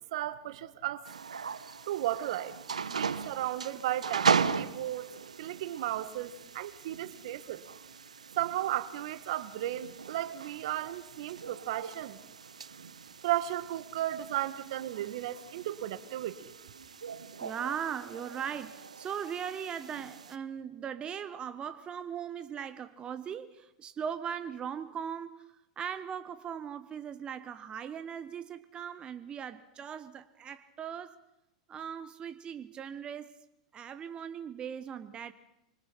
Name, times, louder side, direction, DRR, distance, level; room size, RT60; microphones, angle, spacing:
voice 1, 0.1-1.1 1.9-2.6 2.9-5.1 5.4-7.6 8.4-12.2 13.2-16.5, right 13 dB, 65° right, 1.7 m, -34 dB
sound 1, 1.1-20.4, right 6 dB, 85° right, 1.0 m, -38 dB
voice 2, 17.4-31.2 31.7-33.4 33.7-35.3, right 8 dB, 25° right, 1.0 m, -39 dB
26.5 x 25.0 x 5.9 m
hypercardioid pair, 100°, 4 cm